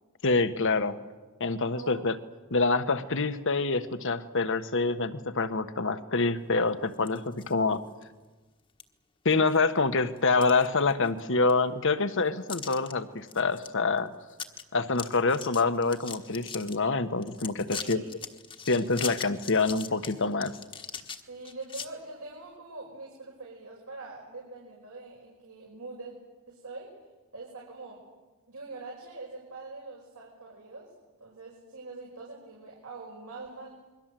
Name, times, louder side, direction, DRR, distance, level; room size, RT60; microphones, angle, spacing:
voice 1, 0.2-1.0 1.4-2.2 2.5-7.8 9.2-14.1 14.7-18.0 18.7-20.5, left 3 dB, 60° left, 10 dB, 1.3 m, -26 dB
sound 1, 6.9-7.5 8.0-8.1 8.8-8.9 9.3-9.8 10.2-11.2 11.5-11.6 12.5-12.9 13.3-13.7 14.0-14.1 14.3-14.6 14.9-16.8 17.2-21.9, left 6 dB, 25° left, 1.4 m, -41 dB
voice 2, 17.7-18.1 21.3-26.1 26.5-26.9 27.3-28.0 28.5-30.9 31.2-33.7, right 3 dB, 80° right, -2 dB, 5.6 m, -43 dB
28.0 x 22.5 x 7.7 m, 1.2 s
head